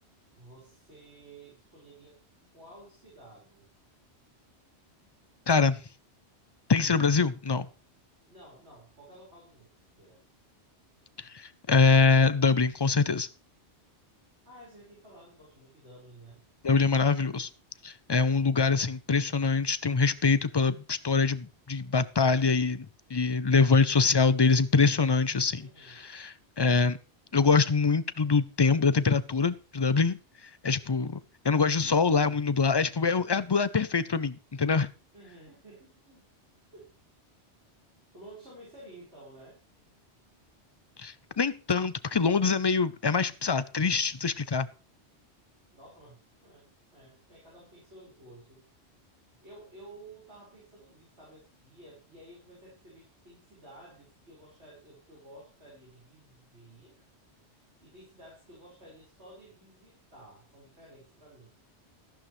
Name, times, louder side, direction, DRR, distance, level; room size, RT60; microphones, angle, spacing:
voice 1, 0.3-2.2 2.5-3.7 8.3-9.7 10.0-10.2 14.4-16.4 25.6-26.1 35.1-36.3 36.7-36.9 38.1-39.6 45.7-48.6 49.4-57.0 57.8-61.5, right 1 dB, 75° right, 5.4 m, -52 dB
voice 2, 5.5-5.8 6.7-7.7 11.2-13.3 16.6-17.5 17.8-22.9 23.1-25.6 26.0-27.0 27.3-30.2 30.6-31.2 31.4-34.9 41.0-44.7, left 4 dB, 40° left, 0.4 m, -24 dB
13.5 x 11.5 x 3.2 m
omnidirectional pair, 1.1 m